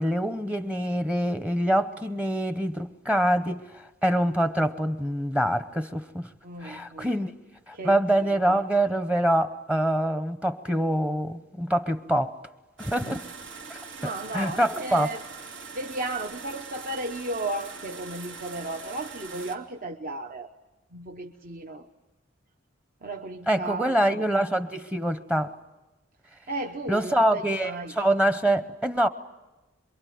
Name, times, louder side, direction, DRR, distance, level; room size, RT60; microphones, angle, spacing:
voice 1, 0.0-6.3 6.6-7.3 7.7-12.4 12.8-13.2 13.7-13.8 14.3-15.1 23.5-25.6 26.9-29.1, right 1 dB, 5° right, 0.8 m, -25 dB
voice 2, 6.4-7.1 7.7-8.0 8.5-8.6 13.0-13.2 14.0-15.2 15.7-20.5 20.9-21.9 23.0-24.2 26.5-28.0, right 2 dB, 45° right, 1.0 m, -34 dB
sound 1, 12.8-19.5, right 5 dB, 80° right, 2.8 m, -42 dB
27.0 x 23.0 x 9.4 m
head